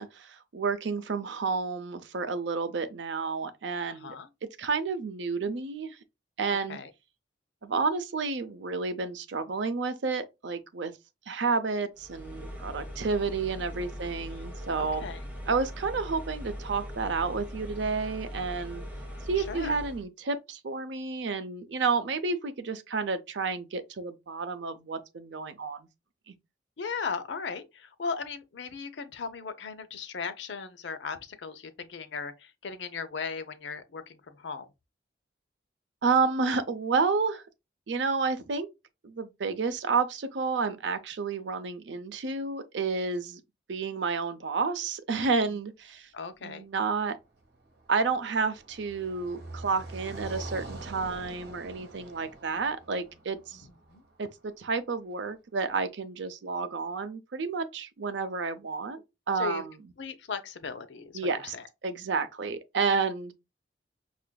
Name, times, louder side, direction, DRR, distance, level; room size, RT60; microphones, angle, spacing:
voice 1, 0.0-4.2 4.6-6.0 6.4-6.8 7.6-10.9 11.3-15.0 15.5-18.8 19.3-25.9 26.3-26.4 36.0-37.4 37.9-38.7 39.0-43.4 43.7-46.1 46.4-47.2 47.9-53.6 54.2-59.7 61.1-61.5 61.8-63.3, right 4 dB, 80° right, 0.6 m, -30 dB
voice 2, 3.9-4.3 6.7-6.9 14.3-14.5 14.8-15.2 19.4-19.8 26.8-34.7 46.1-46.6 53.5-54.0 59.3-59.6 60.0-61.7, left 5 dB, 75° left, 0.6 m, -37 dB
sound 1, 12.0-20.0, equal, 10° right, 0.8 m, -40 dB
Car passing by, 47.2-54.5, right 2 dB, 60° right, 1.1 m, -44 dB
5.7 x 2.5 x 2.2 m
head